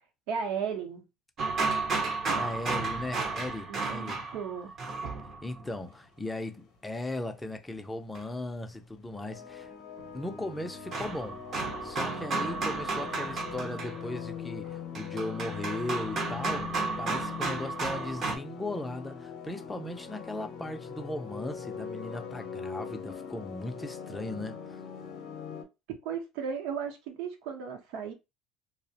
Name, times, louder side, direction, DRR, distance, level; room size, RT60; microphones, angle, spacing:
voice 1, 0.3-1.0 3.7-4.7 26.0-28.1, right 6 dB, 80° right, 0.7 m, -35 dB
sound 1, 1.4-5.7 8.1-8.2 10.0-18.4, right 3 dB, 40° right, 0.6 m, -33 dB
voice 2, 2.3-4.2 5.4-9.7 10.1-11.4 11.8-24.8, left 1 dB, 10° left, 0.4 m, -37 dB
sound 2, 5.9-6.2 6.8-6.9 7.5-7.6 8.5-8.7 9.0-25.6, left 7 dB, 60° left, 0.6 m, -41 dB
2.3 x 2.0 x 2.7 m
cardioid pair, 135°, 0 cm